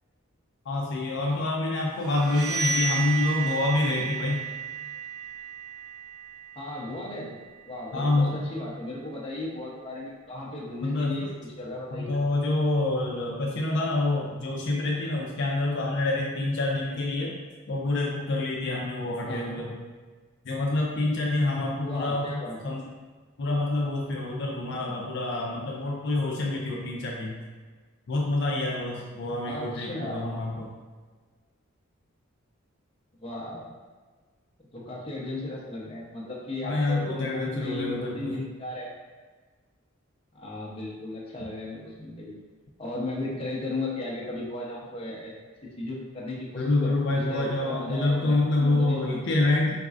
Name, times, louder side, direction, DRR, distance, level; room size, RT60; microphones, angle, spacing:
voice 1, 0.7-4.5 7.9-8.4 10.8-11.3 11.9-17.4 17.7-19.8 20.4-22.8 23.4-27.4 28.1-30.7 36.6-38.4 46.6-49.7, left 2 dB, 60° left, -2 dB, 0.5 m, -27 dB
sound 1, 2.0-7.6, right 6 dB, 80° right, 0.3 m, -33 dB
voice 2, 6.6-7.4 7.6-12.3 19.3-19.6 21.8-22.8 29.5-30.4 33.2-33.7 34.7-38.9 40.3-42.4 42.8-45.4 45.6-49.5, left 2 dB, 25° left, -4 dB, 0.7 m, -36 dB
4.1 x 3.7 x 2.4 m, 1.4 s
head